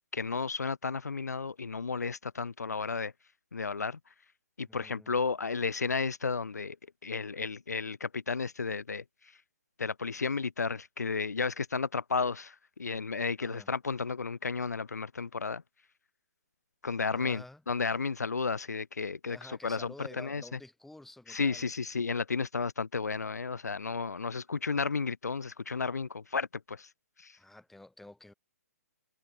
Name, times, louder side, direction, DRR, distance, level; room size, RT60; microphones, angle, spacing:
voice 1, 0.1-3.1 3.5-4.0 4.6-6.8 7.0-9.0 9.8-15.6 16.8-20.4 21.3-26.9 27.2-27.4, left 4 dB, 85° left, 1.4 m, -33 dB
voice 2, 4.7-5.2 13.4-13.7 17.1-17.6 19.3-21.7 27.4-28.3, left 2 dB, 5° left, 4.8 m, -50 dB
hypercardioid pair, 135°, 9 cm